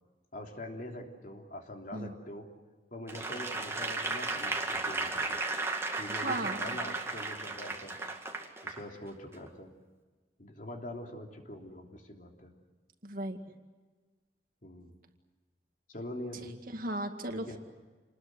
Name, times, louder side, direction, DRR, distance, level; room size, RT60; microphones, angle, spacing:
voice 1, 0.3-2.5 2.9-5.4 6.0-7.9 8.6-9.7 10.4-12.5 14.6-14.9 15.9-16.6 17.3-17.6, left 1 dB, 50° left, 2 dB, 3.3 m, -44 dB
Applause / Crowd, 3.1-8.8 9.3-9.5, right 3 dB, 15° right, 2.2 m, -35 dB
voice 2, 6.1-6.6 13.0-13.4 16.7-17.6, right 1 dB, 55° right, 5 dB, 2.1 m, -36 dB
28.5 x 20.5 x 7.9 m, 1.3 s
head